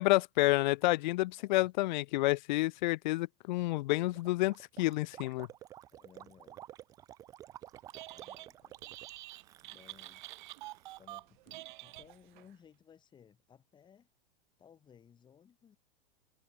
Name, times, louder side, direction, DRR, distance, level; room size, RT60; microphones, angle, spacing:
voice 1, 0.0-5.5, left 19 dB, 50° left, 0.5 m, -29 dB
voice 2, 1.4-1.7 5.9-6.6 7.9-8.8 9.6-10.3 11.0-14.1 14.6-15.8, left 8 dB, 15° left, 4.3 m, -60 dB
Gurgling, 4.1-11.0, right 12 dB, 10° right, 0.4 m, -52 dB
Telephone, 7.8-8.5 8.8-12.5, right 19 dB, 50° right, 1.1 m, -48 dB
supercardioid pair, 170°, 31 cm